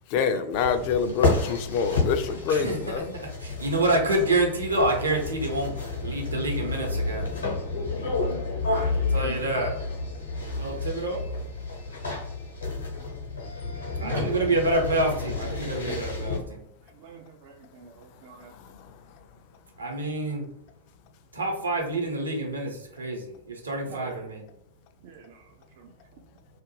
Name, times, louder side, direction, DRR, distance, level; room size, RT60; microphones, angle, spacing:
voice 1, 0.1-3.1, left 6 dB, 45° left, 9 dB, 0.4 m, -26 dB
sound 1, 0.5-16.4, left 3 dB, 75° left, 0.8 m, -30 dB
voice 2, 2.5-2.8 3.1-7.3 9.1-9.8 10.5-11.2 14.0-16.7 19.8-20.5 21.3-24.4, right 2 dB, 80° right, 0 dB, 0.8 m, -27 dB
voice 3, 8.7-9.6 10.3-11.0 12.2-12.8 13.6-14.6 16.8-18.5 23.9-24.3 25.0-26.5, right 5 dB, 50° right, 3 dB, 0.3 m, -45 dB
2.4 x 2.1 x 3.1 m, 0.79 s
figure-of-eight pair, 90°, 0 cm